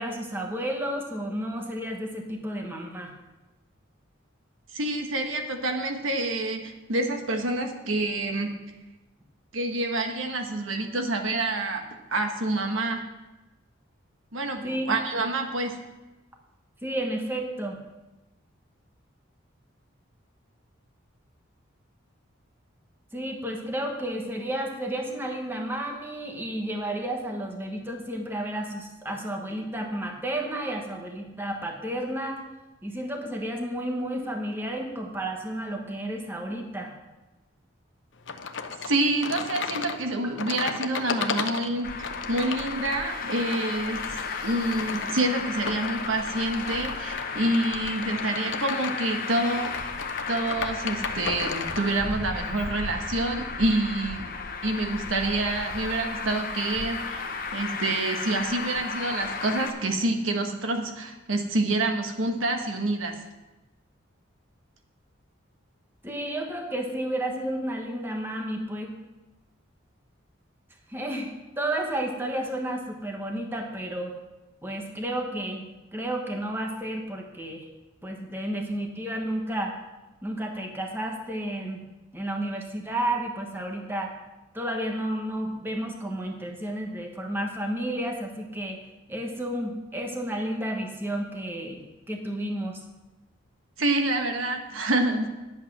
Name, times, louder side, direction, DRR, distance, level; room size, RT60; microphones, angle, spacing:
voice 1, 0.0-3.1 14.6-14.9 16.8-17.8 23.1-32.4 32.8-36.9 66.0-68.9 70.9-71.3 71.6-74.1 74.6-77.7 78.0-79.7 80.2-81.8 82.1-84.1 84.5-88.8 89.1-91.8 92.1-92.8, right 1 dB, 10° right, 1 dB, 1.2 m, -31 dB
voice 2, 4.7-8.5 9.5-11.8 12.1-13.0 14.3-15.8 38.8-44.0 44.4-49.9 50.3-54.3 54.6-57.2 57.5-63.1 93.8-95.3, right 2 dB, 80° right, 4 dB, 1.3 m, -27 dB
sound 1, 38.3-51.9, left 5 dB, 65° left, 0.7 m, -35 dB
Traffic noise roadway noise, 41.8-59.7, left 4 dB, 45° left, 1.0 m, -34 dB
10.0 x 8.2 x 6.0 m, 1.1 s
head